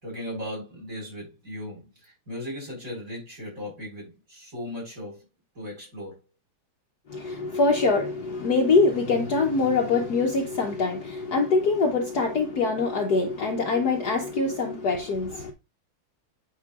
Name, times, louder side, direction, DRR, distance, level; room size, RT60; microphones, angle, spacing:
voice 1, 0.0-5.2 5.5-6.2, left 1 dB, 40° right, 5.0 m, -37 dB
voice 2, 7.1-15.5, left 3 dB, 60° left, 1.2 m, -24 dB
8.5 x 5.7 x 2.4 m
omnidirectional pair, 2.3 m